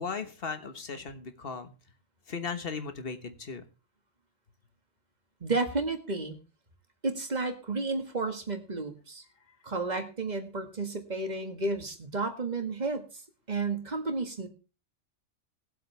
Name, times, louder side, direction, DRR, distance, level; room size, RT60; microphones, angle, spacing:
voice 1, 0.0-1.7 2.3-3.6, left 5 dB, 50° left, 9 dB, 1.5 m, -37 dB
voice 2, 5.4-6.4 7.0-9.2 9.6-13.1 13.5-14.5, right 3 dB, 35° right, 5 dB, 1.9 m, -32 dB
20.0 x 7.7 x 3.3 m, 0.34 s
omnidirectional pair, 1.3 m